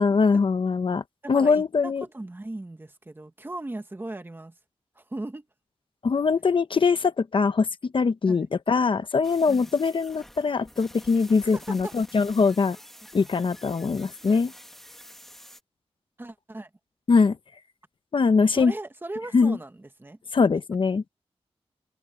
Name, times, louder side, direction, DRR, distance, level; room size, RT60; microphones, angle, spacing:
voice 1, 0.0-2.0 6.0-12.8 13.1-14.5 17.1-17.4 18.1-18.7 19.3-19.6 20.3-21.0, left 4 dB, 50° left, 0.8 m, -22 dB
voice 2, 1.2-4.5 4.9-5.5 8.3-8.4 9.5-9.7 11.4-11.9 16.2-16.7 18.5-20.2, right 2 dB, 20° right, 1.5 m, -38 dB
sound 1, 9.2-15.6, equal, 5° left, 2.1 m, -48 dB
wide cardioid pair, 155°, 11 cm